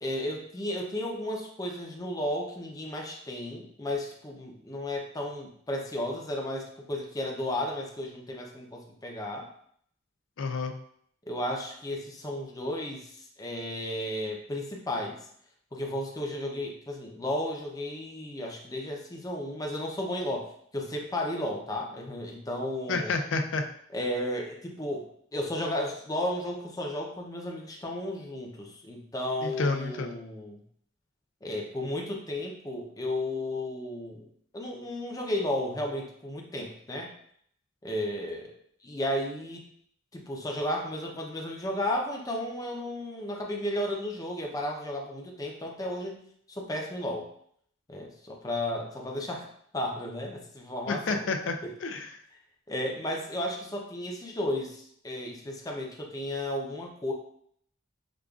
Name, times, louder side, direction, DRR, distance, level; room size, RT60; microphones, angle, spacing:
voice 1, 0.0-9.5 11.2-15.2 15.7-20.5 20.7-23.1 23.9-30.6 31.4-34.3 34.5-37.1 37.8-38.5 38.8-39.6 40.1-46.2 46.5-47.3 47.9-49.5 49.7-51.3 51.6-51.7 52.7-57.1, left 1 dB, 20° left, 0 dB, 0.5 m, -33 dB
voice 2, 10.4-10.7 22.9-23.6 29.4-30.2 50.9-51.5 51.8-52.1, left 3 dB, 70° left, 6 dB, 0.4 m, -29 dB
5.0 x 2.4 x 2.3 m, 0.65 s
head